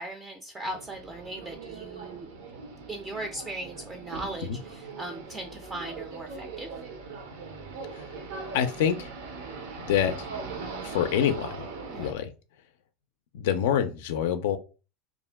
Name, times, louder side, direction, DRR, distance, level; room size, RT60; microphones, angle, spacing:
voice 1, 0.0-2.3 2.9-6.7 11.9-12.1, right 1 dB, 15° right, 4 dB, 0.3 m, -38 dB
sound 1, 0.6-12.1, right 4 dB, 80° right, 0.6 m, -40 dB
voice 2, 8.5-9.1 9.8-10.3 10.8-11.7 12.0-12.3 13.3-14.6, left 9 dB, 80° left, 8 dB, 0.3 m, -26 dB
2.4 x 2.1 x 3.3 m, 0.33 s
supercardioid pair, 130°, 0 cm